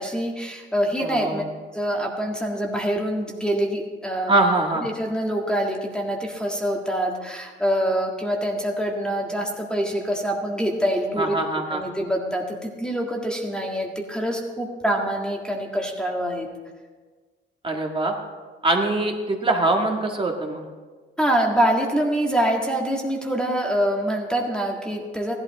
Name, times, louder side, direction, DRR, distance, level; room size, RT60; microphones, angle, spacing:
voice 1, 0.0-1.4 1.7-4.3 4.8-11.4 11.7-16.5 21.2-25.3, right 1 dB, 5° left, 0 dB, 1.7 m, -25 dB
voice 2, 1.0-1.4 4.3-4.9 11.2-11.8 17.6-18.1 18.6-20.6, right 2 dB, 25° right, 1 dB, 1.8 m, -23 dB
15.5 x 11.5 x 4.2 m, 1.4 s
cardioid pair, 90°, 20 cm